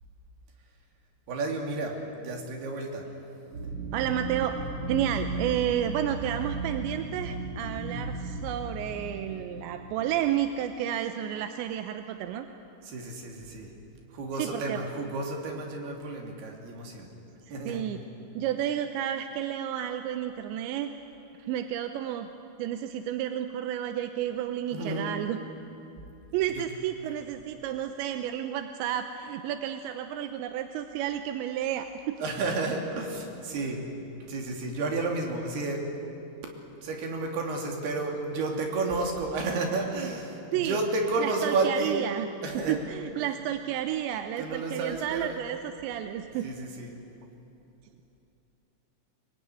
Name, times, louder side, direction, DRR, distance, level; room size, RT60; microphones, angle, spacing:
voice 1, 1.3-3.1 12.9-13.7 14.1-17.1 17.5-17.8 24.7-25.1 26.6-26.7 27.1-27.2 32.2-33.8 34.3-35.8 36.4-36.5 36.8-42.1 42.4-42.8 43.2-43.3 44.4-45.4 46.4-46.9, right 3 dB, 55° right, 2 dB, 4.5 m, -31 dB
sound 1, 3.5-10.2, right 2 dB, 35° right, 3.1 m, -36 dB
voice 2, 3.9-4.6 4.9-12.5 14.3-14.8 17.5-18.0 18.4-20.9 21.4-22.3 22.6-25.4 26.3-32.2 40.5-40.8 41.2-42.3 42.5-46.5, right 11 dB, 75° right, 7 dB, 2.8 m, -31 dB
24.0 x 23.0 x 9.9 m, 2.9 s
omnidirectional pair, 5.8 m